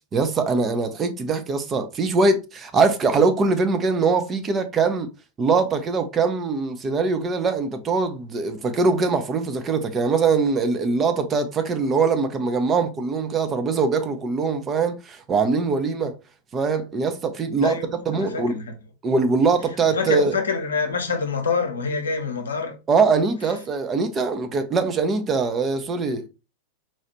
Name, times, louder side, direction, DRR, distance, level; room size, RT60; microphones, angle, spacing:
voice 1, 0.1-5.1 5.4-16.1 16.5-17.8 18.1-18.6 19.0-20.4 22.9-26.3, right 4 dB, 25° right, 0.5 m, -22 dB
voice 2, 18.1-18.6 19.9-22.8, left 5 dB, 70° left, 0.7 m, -26 dB
4.1 x 2.4 x 2.8 m
figure-of-eight pair, 90°, 0 cm